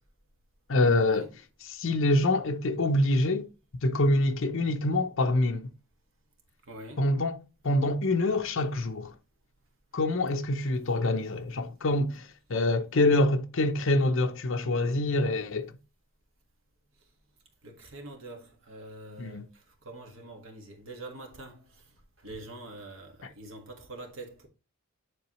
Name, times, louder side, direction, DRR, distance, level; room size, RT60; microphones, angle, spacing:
voice 1, 0.7-1.3 1.6-3.5 3.8-5.7 7.0-7.4 7.6-9.1 9.9-15.7 19.2-19.5, left 2 dB, 60° left, 0.7 m, -26 dB
voice 2, 6.7-7.1 17.6-19.4 19.8-21.6 22.2-24.5, right 2 dB, 60° right, 1.7 m, -44 dB
10.0 x 3.8 x 3.0 m
head